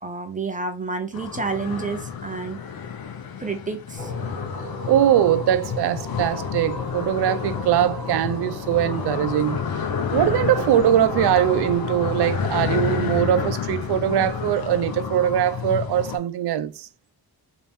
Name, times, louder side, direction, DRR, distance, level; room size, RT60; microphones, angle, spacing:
voice 1, 0.0-2.6 3.4-4.1, right 4 dB, 20° right, 0.6 m, -29 dB
sound 1, 1.1-16.2, left 7 dB, 65° left, 0.8 m, -29 dB
sound 2, 4.0-12.7, equal, ahead, 1.8 m, -39 dB
voice 2, 4.9-9.6 10.1-16.9, right 11 dB, 85° right, 0.5 m, -21 dB
4.1 x 2.8 x 3.5 m
wide cardioid pair, 140°, 38 cm